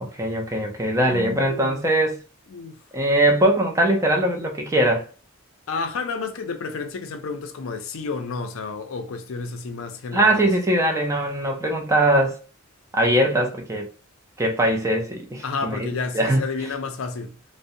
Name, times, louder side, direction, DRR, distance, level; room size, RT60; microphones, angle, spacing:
voice 1, 0.0-2.2 2.9-5.1 10.1-12.3 12.9-13.9 14.4-15.9 16.1-16.4, right 1 dB, 15° right, 0.4 m, -21 dB
voice 2, 1.1-1.8 2.5-2.8 5.7-10.5 15.4-17.4, left 4 dB, 65° left, 0.4 m, -31 dB
2.6 x 2.0 x 2.6 m
head